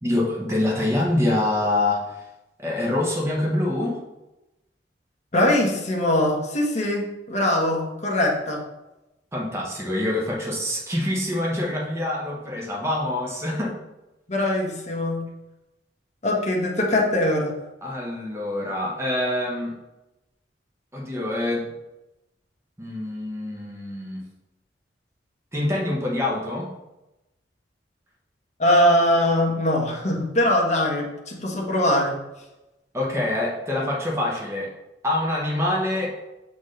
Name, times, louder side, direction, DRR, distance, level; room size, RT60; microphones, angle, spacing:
voice 1, 0.0-2.1 2.6-4.0 9.3-13.7 17.8-19.7 20.9-21.7 22.8-24.2 25.5-26.7 32.9-34.7 35.0-36.2, left 1 dB, 15° right, -3 dB, 1.1 m, -25 dB
voice 2, 5.3-8.6 14.3-15.2 16.2-17.5 28.6-32.1, left 1 dB, 40° left, -2 dB, 1.3 m, -22 dB
7.0 x 4.3 x 3.2 m, 0.97 s
head